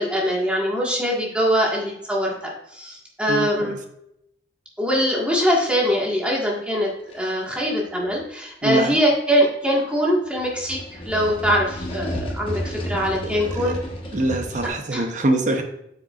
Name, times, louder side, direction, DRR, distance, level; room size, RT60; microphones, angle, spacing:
voice 1, 0.0-3.8 4.8-13.8 14.9-15.0, equal, 5° right, -3 dB, 1.6 m, -22 dB
voice 2, 3.3-3.8 8.6-9.0 13.2-13.8 14.1-15.6, right 1 dB, 45° right, 5 dB, 0.8 m, -24 dB
sound 1, 7.1-7.3 8.1-8.2 10.4-14.7, equal, 30° left, 1.2 m, -32 dB
8.1 x 6.7 x 2.4 m, 0.78 s
head